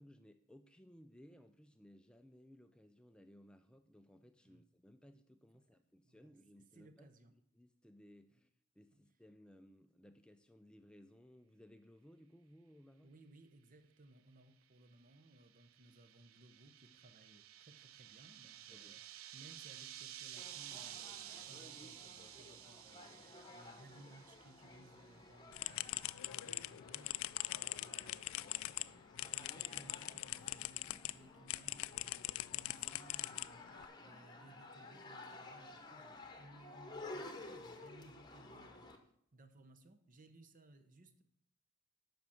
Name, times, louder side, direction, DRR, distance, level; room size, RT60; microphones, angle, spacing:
voice 1, 0.0-8.5 8.8-13.1 18.7-19.0, equal, 5° left, 8 dB, 0.3 m, -61 dB
voice 2, 6.0-6.3 6.7-7.3 13.0-41.2, right 1 dB, 40° right, 9 dB, 0.9 m, -62 dB
sound 1, 15.1-24.9, right 12 dB, 80° right, 0.5 m, -53 dB
sound 2, 20.4-39.0, left 2 dB, 20° left, 1.0 m, -54 dB
sound 3, 25.5-31.1 31.5-33.8, left 17 dB, 80° left, 0.3 m, -42 dB
7.9 x 6.0 x 7.0 m, 0.69 s
head